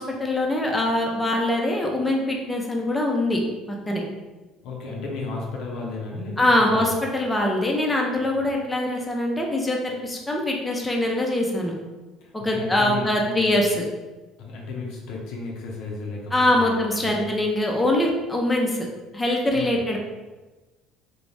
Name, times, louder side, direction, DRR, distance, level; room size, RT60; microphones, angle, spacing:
voice 1, 0.0-3.4 3.7-4.0 6.4-11.7 12.3-13.8 16.3-18.9 19.1-20.0, left 1 dB, 15° left, 0 dB, 0.5 m, -23 dB
voice 2, 4.6-7.0 8.4-8.5 12.2-13.6 14.4-17.3 19.5-19.8, left 3 dB, 65° left, -1 dB, 0.5 m, -34 dB
2.5 x 2.1 x 3.2 m, 1.2 s
hypercardioid pair, 65°, 0 cm